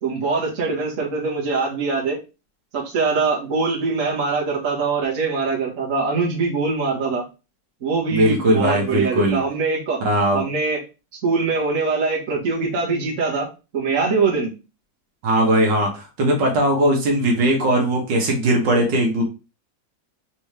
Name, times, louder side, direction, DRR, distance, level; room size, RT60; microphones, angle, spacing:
voice 1, 0.0-2.2 2.7-7.2 7.8-10.0 10.3-10.8 11.2-13.5 13.7-14.5, right 4 dB, 45° right, -3 dB, 1.7 m, -23 dB
voice 2, 8.1-9.4 10.0-10.4 15.2-19.2, right 1 dB, 80° right, 1 dB, 1.7 m, -19 dB
4.3 x 3.3 x 3.2 m, 0.30 s
omnidirectional pair, 2.0 m